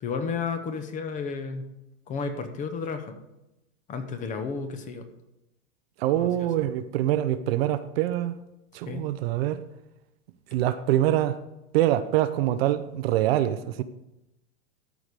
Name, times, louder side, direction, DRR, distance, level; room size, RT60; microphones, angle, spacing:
voice 1, 0.0-1.7 2.1-3.2 3.9-5.0 6.1-6.5 8.9-9.1, left 5 dB, 20° left, 0.8 m, -32 dB
voice 2, 6.0-8.3 8.7-9.6 10.5-11.4 11.7-13.8, right 13 dB, 55° right, 0.6 m, -24 dB
13.0 x 4.9 x 5.2 m
supercardioid pair, 155°, 37 cm